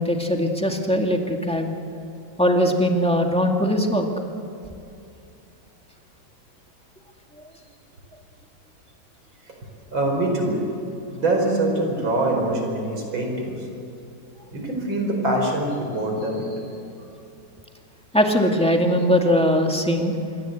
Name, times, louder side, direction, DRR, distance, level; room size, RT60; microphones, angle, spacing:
voice 1, 0.0-1.7 2.4-4.1 18.1-20.2, equal, 5° left, 2 dB, 1.9 m, -20 dB
voice 2, 9.9-10.7 11.1-13.7 14.5-16.7, right 1 dB, 80° right, 2 dB, 5.6 m, -24 dB
27.0 x 23.5 x 8.1 m, 2.6 s
omnidirectional pair, 2.1 m